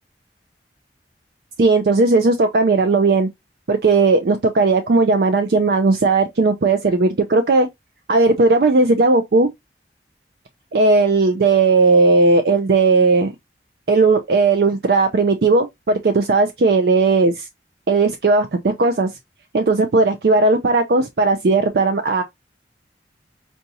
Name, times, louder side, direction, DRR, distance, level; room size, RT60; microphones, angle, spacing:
voice 1, 1.6-3.3 3.7-7.7 8.1-9.5 10.7-13.3 13.9-17.5 17.9-19.1 19.5-22.2, right 3 dB, 60° right, 0.5 m, -16 dB
4.6 x 2.7 x 2.7 m
head